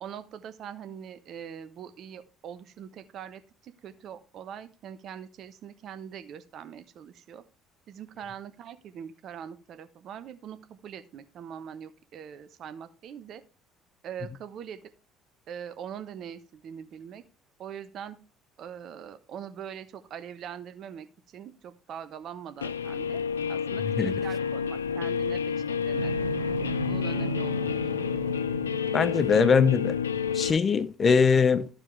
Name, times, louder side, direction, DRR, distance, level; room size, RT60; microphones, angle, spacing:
voice 1, 0.0-7.4 7.9-13.4 14.0-14.9 15.5-17.2 17.6-18.2 18.6-26.1 26.8-28.3, right 8 dB, 50° right, 1.0 m, -42 dB
Guitar, 22.6-30.5, left 7 dB, 85° left, 0.3 m, -29 dB
sound 1, 25.9-30.1, right 5 dB, 85° right, 0.5 m, -37 dB
voice 2, 28.9-29.9 30.3-31.7, left 5 dB, 40° left, 0.6 m, -22 dB
14.0 x 4.8 x 3.2 m
figure-of-eight pair, 55°, 0 cm